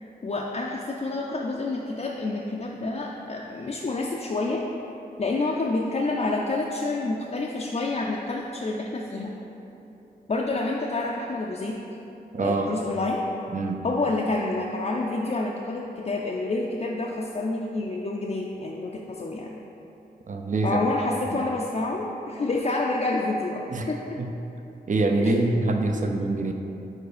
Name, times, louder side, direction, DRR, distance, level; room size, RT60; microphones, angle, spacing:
voice 1, 0.0-4.6 5.2-9.3 10.3-11.8 12.4-13.2 13.8-19.6 20.6-24.2 25.2-26.1, left 2 dB, 40° left, -2 dB, 0.4 m, -28 dB
voice 2, 12.3-12.8 13.5-13.8 20.3-20.8 21.3-21.4 23.7-23.9 24.2-24.3 24.9-26.5, right 2 dB, 50° right, 4 dB, 0.5 m, -25 dB
4.6 x 4.6 x 5.0 m, 3.0 s
wide cardioid pair, 80°, 17 cm